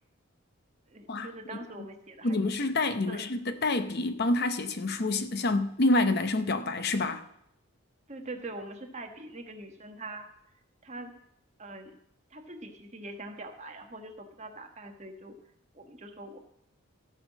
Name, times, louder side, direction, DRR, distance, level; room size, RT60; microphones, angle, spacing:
voice 1, 0.9-2.4 2.8-3.3 8.1-10.3 10.8-11.1 11.6-11.9 12.3-15.4 15.7-16.4, right 2 dB, 30° right, 1.3 m, -43 dB
voice 2, 2.2-7.2, left 2 dB, 45° left, 0.7 m, -27 dB
14.5 x 5.7 x 7.3 m
head